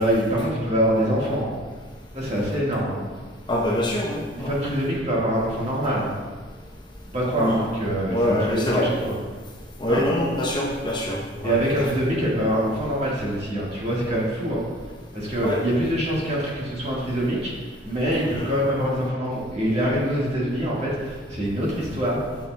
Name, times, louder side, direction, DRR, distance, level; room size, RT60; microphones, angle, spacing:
voice 1, 0.0-1.5 2.1-3.0 3.7-3.8 4.3-6.1 7.1-9.2 9.9-10.0 11.4-14.6 15.1-22.4, equal, 35° right, -5 dB, 1.5 m, -24 dB
voice 2, 3.5-4.6 7.4-7.5 8.1-8.9 9.8-11.6 15.4-15.6 18.4-18.5, left 1 dB, 25° left, -3 dB, 0.7 m, -24 dB
6.8 x 6.6 x 2.2 m, 1.4 s
head